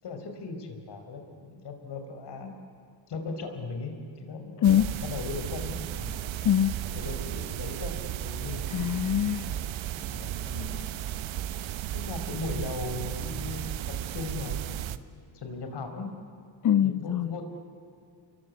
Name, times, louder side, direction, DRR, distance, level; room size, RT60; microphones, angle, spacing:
voice 1, 0.0-2.6 3.1-6.2 6.9-8.6 10.1-10.9 11.9-14.7 15.3-16.1 16.8-17.4, left 3 dB, 60° left, 5.2 m, -38 dB
voice 2, 4.6-5.0 6.4-6.9 8.7-9.7 16.6-17.4, left 10 dB, 40° left, 0.6 m, -24 dB
sound 1, 4.6-15.0, right 11 dB, 75° right, 1.2 m, -34 dB
29.5 x 23.0 x 8.7 m
cardioid pair, 105°, 47 cm